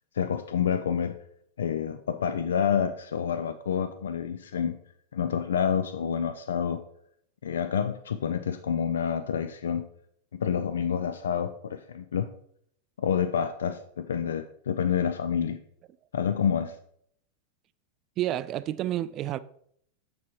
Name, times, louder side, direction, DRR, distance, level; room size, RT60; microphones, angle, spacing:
voice 1, 0.1-1.1 1.6-4.8 5.1-6.8 7.4-9.8 10.3-12.3 13.0-15.6 16.1-16.8, left 8 dB, 65° left, 0.3 m, -28 dB
voice 2, 18.2-19.4, right 13 dB, 35° right, 0.3 m, -29 dB
8.2 x 4.7 x 3.0 m
figure-of-eight pair, 90°, 0 cm